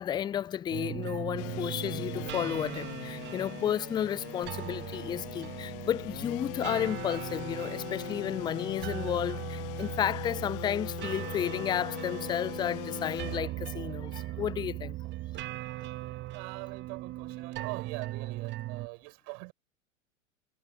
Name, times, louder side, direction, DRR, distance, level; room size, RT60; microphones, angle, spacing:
voice 1, 0.0-15.0, left 10 dB, 10° left, 0.5 m, -32 dB
sound 1, 0.7-18.9, right 16 dB, 25° right, 1.0 m, -39 dB
sound 2, 1.4-13.4, left 25 dB, 45° left, 0.9 m, -41 dB
voice 2, 16.3-19.5, right 40 dB or more, 45° right, 7.9 m, -43 dB
figure-of-eight pair, 95°, 40 cm